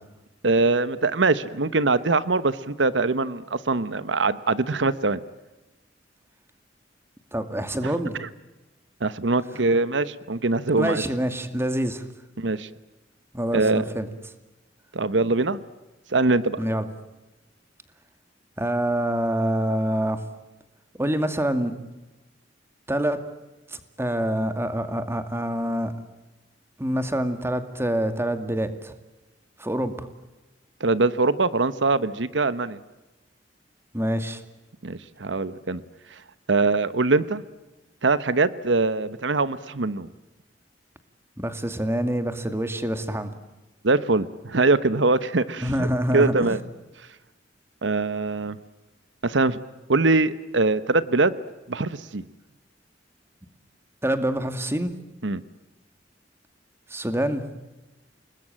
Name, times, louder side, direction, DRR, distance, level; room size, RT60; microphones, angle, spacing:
voice 1, 0.4-5.2 7.8-7.9 8.2-8.3 9.0-11.0 12.4-12.7 13.5-13.9 14.9-15.6 16.1-16.6 30.8-32.8 34.8-35.8 36.5-37.4 38.0-40.1 43.8-45.9 46.1-46.6 47.8-48.6 49.2-49.6 49.9-51.3 51.7-52.2 55.2-55.4, right 3 dB, 80° right, 15 dB, 1.0 m, -22 dB
voice 2, 7.3-8.2 10.8-12.0 13.3-14.1 16.6-16.9 18.6-20.2 21.0-21.8 22.9-23.2 23.7-25.9 26.8-28.9 29.6-30.1 33.9-34.4 41.4-43.3 45.6-46.6 54.0-55.0 56.9-57.4, right 1 dB, 15° right, 9 dB, 2.2 m, -26 dB
29.5 x 20.5 x 8.9 m, 1.1 s
head